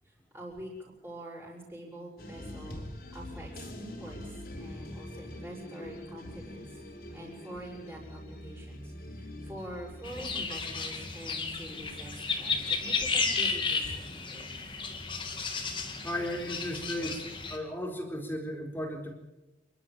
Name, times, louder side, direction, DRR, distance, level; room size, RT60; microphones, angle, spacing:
voice 1, 0.1-6.8 7.1-14.6, right 1 dB, 10° right, -7 dB, 6.7 m, -45 dB
sound 1, 2.2-10.5, left 1 dB, 55° left, 4.2 m, -44 dB
sound 2, 10.0-17.6, left 4 dB, 30° left, 2.6 m, -33 dB
voice 2, 16.0-19.1, left 1 dB, 10° left, 3 dB, 3.9 m, -35 dB
28.5 x 12.5 x 8.9 m, 1.0 s
head